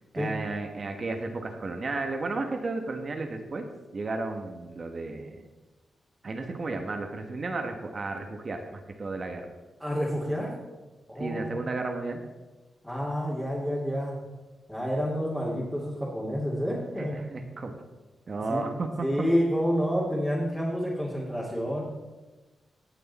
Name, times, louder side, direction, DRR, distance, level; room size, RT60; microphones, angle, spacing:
voice 1, 0.1-3.6 3.9-5.4 6.2-9.4 11.2-12.2 17.0-17.8 18.3-19.1, right 3 dB, 45° right, 4 dB, 1.3 m, -33 dB
voice 2, 9.8-10.5 11.1-11.6 12.8-14.2 14.7-17.5 18.5-18.6 19.0-21.8, equal, 5° left, -7 dB, 2.5 m, -29 dB
17.5 x 6.7 x 4.2 m, 1.2 s
wide cardioid pair, 105°, 0 cm